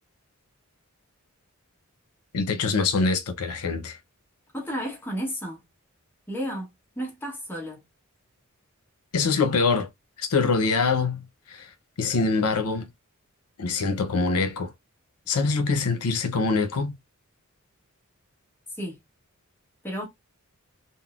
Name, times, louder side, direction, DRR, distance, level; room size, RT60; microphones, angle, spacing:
voice 1, 2.3-4.0 9.1-9.9 10.2-11.7 12.0-12.9 13.6-14.7 15.3-16.9, left 4 dB, 85° left, 0.6 m, -24 dB
voice 2, 4.5-5.6 6.3-6.7 7.0-7.8 18.8-19.0 19.8-20.1, equal, 10° left, 1.0 m, -32 dB
3.8 x 2.0 x 2.4 m
head